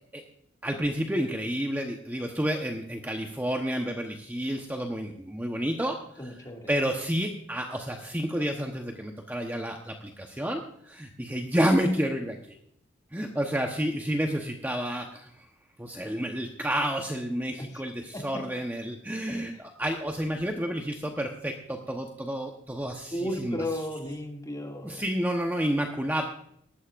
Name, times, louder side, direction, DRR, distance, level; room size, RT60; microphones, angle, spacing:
voice 1, 0.6-6.0 6.7-12.6 13.1-15.4 15.8-23.6 24.8-26.2, equal, 10° right, 2 dB, 1.0 m, -30 dB
voice 2, 6.2-6.7 17.6-17.8 18.1-18.4 19.5-19.6 23.1-25.0, left 1 dB, 20° left, 1 dB, 2.3 m, -34 dB
19.0 x 13.5 x 2.5 m, 0.71 s
head